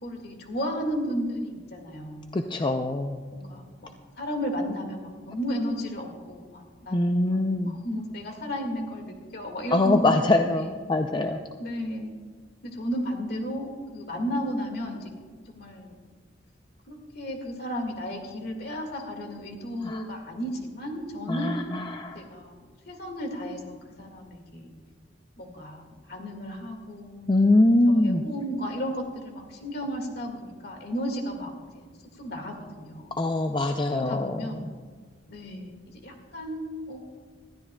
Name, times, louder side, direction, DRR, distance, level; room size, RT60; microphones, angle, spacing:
voice 1, 0.0-2.4 3.3-3.9 4.2-10.7 11.6-12.1 12.6-15.1 15.5-16.0 16.9-21.6 22.1-22.6 22.9-24.7 25.4-27.3 27.9-31.9 32.2-33.2 33.9-34.6 35.3-37.0, equal, 60° left, 3 dB, 1.9 m, -34 dB
voice 2, 2.3-3.2 6.9-7.8 9.7-11.4 19.8-20.0 21.3-22.2 27.3-28.2 33.1-34.7, left 2 dB, 25° left, 5 dB, 0.5 m, -23 dB
20.0 x 13.0 x 2.3 m, 1.5 s
head